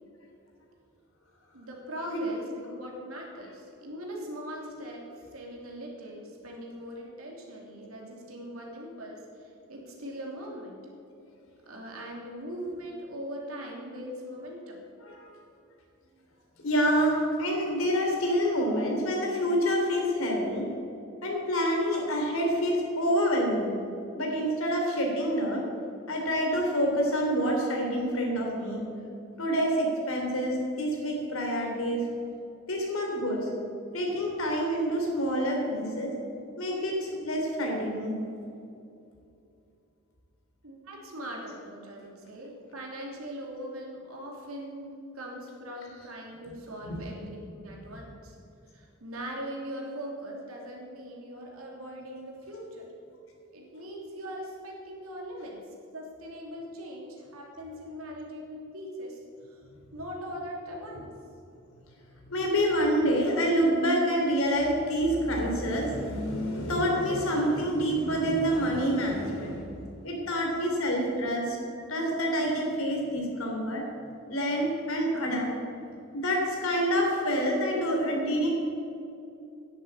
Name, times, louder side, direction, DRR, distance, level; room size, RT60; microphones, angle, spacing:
voice 1, 1.5-10.8 11.6-14.8 27.9-28.0 40.6-48.4 48.7-52.9 53.5-55.6 55.9-59.6 59.9-61.1 67.5-67.9 68.1-68.3 70.8-70.9 71.8-71.9, equal, 85° right, -1 dB, 3.1 m, -41 dB
voice 2, 16.6-20.6 21.2-23.7 24.2-25.6 26.1-28.8 29.4-32.0 32.7-33.5 33.9-36.1 36.6-38.1 46.9-47.0 62.3-69.6 70.0-71.6 71.9-73.8 74.3-75.5 76.1-78.5, equal, 75° left, 0 dB, 3.5 m, -27 dB
10.5 x 8.4 x 9.2 m, 2.6 s
head